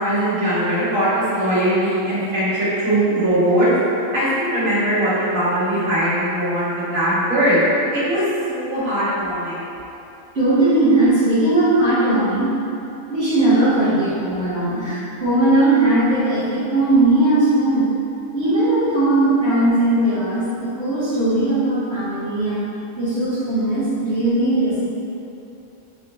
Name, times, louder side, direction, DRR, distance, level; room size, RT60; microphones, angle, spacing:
voice 1, 0.0-3.7 4.1-7.6 7.9-9.7, right 1 dB, 70° right, -12 dB, 1.8 m, -20 dB
voice 2, 10.3-12.5 13.1-17.9 18.3-22.7 23.0-24.8, right 2 dB, 55° right, -16 dB, 1.3 m, -18 dB
5.7 x 2.9 x 2.6 m, 2.8 s
omnidirectional pair, 1.4 m